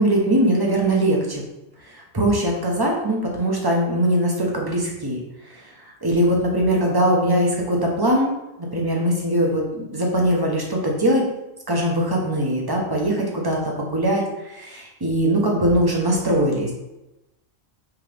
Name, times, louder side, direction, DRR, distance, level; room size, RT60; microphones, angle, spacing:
voice 1, 0.0-1.4 1.9-5.2 6.0-8.3 8.6-11.2 11.7-16.7, right 1 dB, 20° right, -1 dB, 1.1 m, -21 dB
6.1 x 4.5 x 3.5 m, 0.95 s
omnidirectional pair, 1.3 m